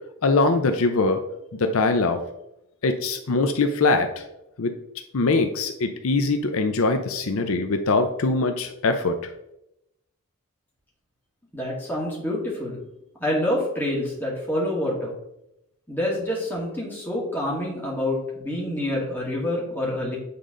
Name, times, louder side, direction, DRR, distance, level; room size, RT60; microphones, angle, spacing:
voice 1, 0.2-1.2 1.6-2.2 2.8-4.2 4.6-4.7 5.1-9.2, left 3 dB, 75° left, 7 dB, 0.6 m, -22 dB
voice 2, 11.5-12.8 13.2-15.1 15.9-20.2, left 1 dB, 10° left, -5 dB, 2.0 m, -27 dB
8.4 x 3.8 x 3.8 m, 0.83 s
head